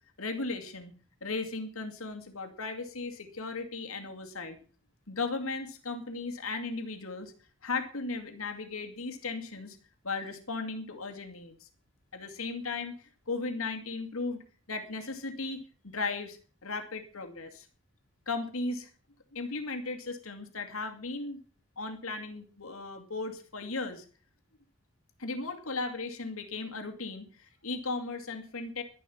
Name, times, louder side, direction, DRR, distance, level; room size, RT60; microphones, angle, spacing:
voice 1, 0.2-0.9 1.2-4.6 5.1-7.3 7.6-9.8 10.0-11.7 12.1-13.0 13.3-14.4 14.7-15.6 15.8-17.7 18.3-18.9 19.3-21.4 21.8-24.0 25.2-28.8, left 3 dB, 90° left, 5 dB, 2.4 m, -36 dB
12.0 x 11.5 x 7.1 m, 0.41 s
head